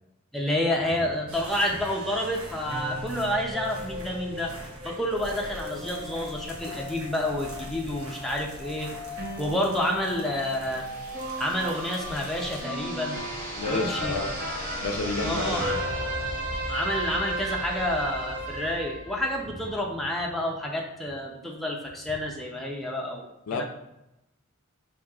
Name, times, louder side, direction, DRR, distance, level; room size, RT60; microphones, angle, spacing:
voice 1, 0.3-4.5 4.8-8.9 9.4-10.8 11.4-13.2 13.7-14.2 15.2-15.8 16.7-23.6, left 1 dB, ahead, -2 dB, 0.5 m, -29 dB
sound 1, 1.3-18.8, right 1 dB, 75° right, 0.8 m, -45 dB
sound 2, 2.6-19.7, equal, 45° right, 0.7 m, -35 dB
voice 2, 13.5-14.4 14.8-15.6 23.5-23.6, left 3 dB, 75° left, 5 dB, 0.4 m, -30 dB
5.1 x 2.7 x 2.3 m, 0.90 s
head